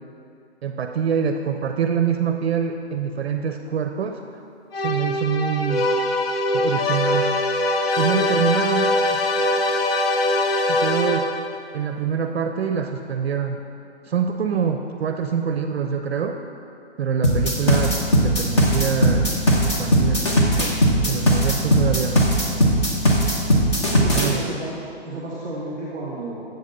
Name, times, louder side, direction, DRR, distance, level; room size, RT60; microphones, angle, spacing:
voice 1, 0.6-4.2 4.8-5.8 6.5-7.3 8.0-9.3 10.7-11.4 11.7-13.6 14.1-16.4 17.0-18.0 18.2-20.2 20.6-20.7 21.1-22.4 24.1-24.4, right 7 dB, 65° right, 5 dB, 0.5 m, -25 dB
sound 1, 4.7-11.6, left 1 dB, 60° left, 0.7 m, -22 dB
sound 2, 17.2-24.3, equal, 25° left, 0.8 m, -18 dB
voice 2, 24.0-26.4, right 2 dB, 5° right, -10 dB, 0.6 m, -32 dB
7.9 x 4.0 x 6.4 m, 2.5 s
hypercardioid pair, 170°, 34 cm